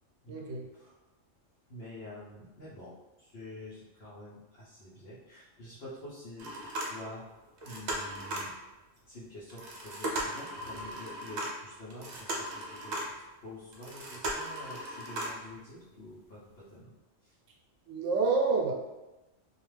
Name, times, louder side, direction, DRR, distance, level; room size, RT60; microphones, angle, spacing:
voice 1, 0.3-0.6 17.9-18.7, right 4 dB, 80° right, 0 dB, 1.0 m, -28 dB
voice 2, 1.7-7.2 7.6-8.5 9.0-16.9 17.2-17.4, left 1 dB, 60° left, -9 dB, 0.9 m, -47 dB
sound 1, 6.4-7.3 7.6-8.6 9.5-13.3 13.7-15.5 16.0-16.1 16.5-16.6, right 1 dB, 55° right, 0.5 m, -37 dB
2.4 x 2.3 x 3.1 m, 1.0 s
omnidirectional pair, 1.3 m